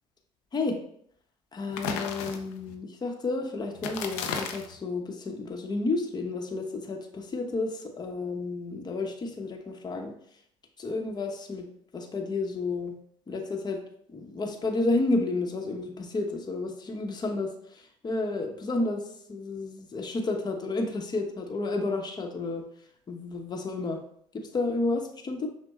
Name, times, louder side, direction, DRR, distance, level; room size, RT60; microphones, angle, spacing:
voice 1, 1.5-10.1 10.8-11.7 11.9-12.9 13.3-13.8 14.1-17.5 18.0-19.0 19.3-22.6 23.1-24.0 24.3-25.5, left 3 dB, 30° left, 3 dB, 0.9 m, -31 dB
sound 1, 1.7-2.7 3.7-4.8, left 6 dB, 85° left, 0.6 m, -34 dB
6.0 x 2.2 x 3.6 m, 0.67 s
supercardioid pair, 75°, 14 cm